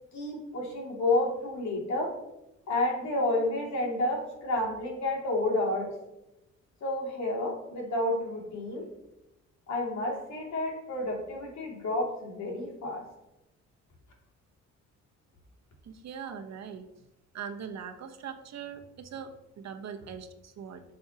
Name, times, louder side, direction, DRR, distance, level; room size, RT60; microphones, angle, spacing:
voice 1, 0.1-2.2 2.7-5.9 6.8-8.9 9.7-13.0 16.2-16.3, left 2 dB, 65° left, -1 dB, 2.6 m, -30 dB
voice 2, 15.8-16.9 17.3-20.8, right 7 dB, 60° right, 5 dB, 1.0 m, -41 dB
10.5 x 6.3 x 2.9 m, 0.93 s
cardioid pair, 90°, 30 cm